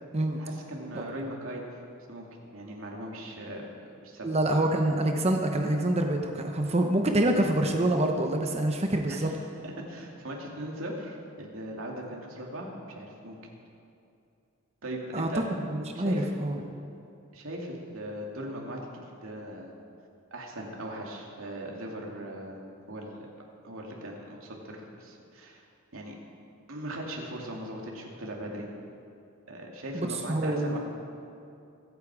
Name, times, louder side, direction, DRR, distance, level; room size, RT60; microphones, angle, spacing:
voice 1, 0.4-1.6 2.1-2.3 2.5-3.7 4.0-4.3 9.1-9.3 9.6-13.4 14.8-15.4 15.9-16.3 17.3-19.7 20.3-22.6 22.9-23.3 23.6-25.6 25.9-26.1 26.7-28.7 29.5-30.8, right 1 dB, 80° right, -1 dB, 2.5 m, -39 dB
voice 2, 4.2-9.3 15.1-16.8 29.9-30.8, right 1 dB, 30° right, 3 dB, 0.9 m, -26 dB
23.5 x 8.8 x 4.9 m, 2.6 s
head